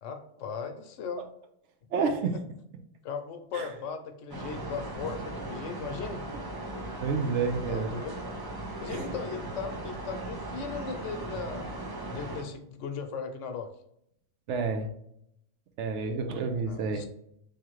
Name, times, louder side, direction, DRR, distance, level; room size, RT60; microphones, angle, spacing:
voice 1, 0.0-1.3 2.0-2.1 3.0-6.2 7.5-8.2 8.8-11.7 12.1-13.7 16.7-17.1, left 5 dB, 75° left, 6 dB, 1.0 m, -37 dB
voice 2, 1.9-2.3 3.5-3.7 7.0-8.0 8.9-9.0 14.5-14.9 15.8-17.1, right 5 dB, 70° right, 6 dB, 0.9 m, -29 dB
sound 1, 4.3-12.4, right 2 dB, 35° right, 0.3 m, -38 dB
3.6 x 3.1 x 3.0 m, 0.75 s
omnidirectional pair, 1.3 m